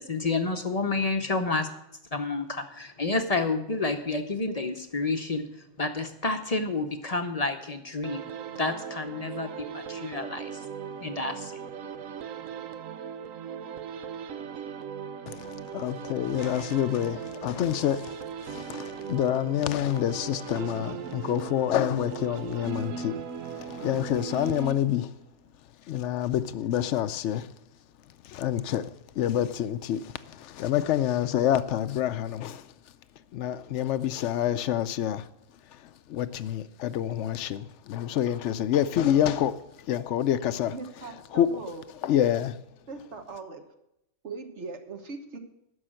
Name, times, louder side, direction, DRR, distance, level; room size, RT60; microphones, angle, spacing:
voice 1, 0.0-1.7 2.1-5.5 5.8-10.5 11.0-11.5, left 3 dB, 35° left, 0.7 m, -29 dB
sound 1, 8.0-25.2, right 7 dB, 85° right, 1.1 m, -38 dB
voice 2, 15.3-18.2 18.4-23.2 23.5-25.1 25.9-27.5 28.2-32.7 33.3-35.3 36.1-39.6 39.9-40.7 41.3-41.5 42.0-42.6, left 11 dB, 70° left, 0.8 m, -27 dB
voice 3, 40.7-41.8 42.9-43.6 44.2-45.4, right 4 dB, 60° right, 1.5 m, -40 dB
11.0 x 6.4 x 7.6 m
omnidirectional pair, 1.3 m